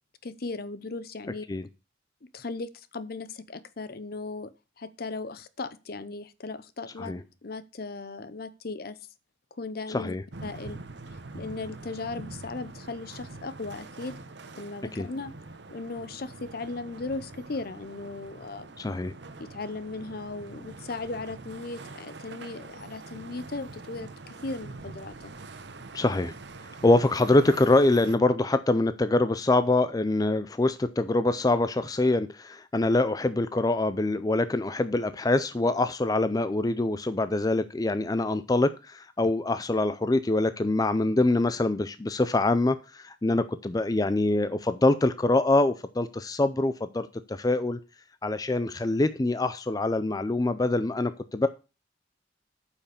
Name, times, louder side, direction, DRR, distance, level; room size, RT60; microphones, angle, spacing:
voice 1, 0.2-1.5 2.2-4.5 4.8-7.2 7.4-9.0 9.6-10.1 10.4-10.8 11.3-14.2 14.6-15.3 15.7-18.8 19.4-25.3, left 3 dB, 55° left, 16 dB, 0.7 m, -37 dB
voice 2, 9.9-10.2 15.0-15.1 18.8-19.1 25.9-26.3 26.8-47.8 48.2-51.5, left 2 dB, 20° left, 12 dB, 0.4 m, -24 dB
sound 1, 10.3-28.2, right 3 dB, 60° right, 0.9 m, -44 dB
8.6 x 5.8 x 6.7 m, 0.31 s
head